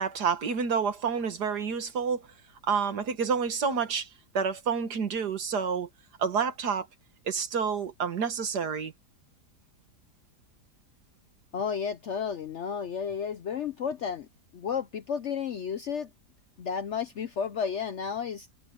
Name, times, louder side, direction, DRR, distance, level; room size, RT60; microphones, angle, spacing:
voice 1, 0.0-2.2 2.7-4.1 4.3-5.9 6.2-6.9 7.3-8.9, right 6 dB, 70° right, 2.1 m, -28 dB
voice 2, 11.5-14.3 14.5-16.1 16.6-18.5, left 7 dB, 60° left, 0.8 m, -32 dB
omnidirectional pair, 1.8 m